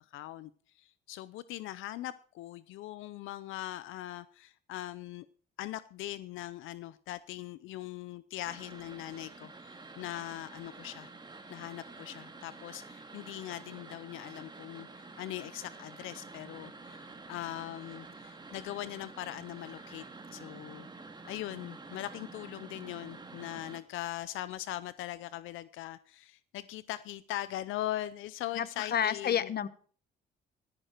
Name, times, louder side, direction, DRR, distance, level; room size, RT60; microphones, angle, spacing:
voice 1, 0.1-0.5 0.8-5.3 5.6-11.1 11.5-20.0 20.3-20.9 21.3-29.5, left 14 dB, 90° left, 16 dB, 0.6 m, -41 dB
sound 1, 8.5-23.8, right 3 dB, 20° right, 2.0 m, -49 dB
voice 2, 28.6-29.7, left 9 dB, 50° left, 15 dB, 1.1 m, -30 dB
14.5 x 14.0 x 4.5 m, 0.44 s
cardioid pair, 90°, 20 cm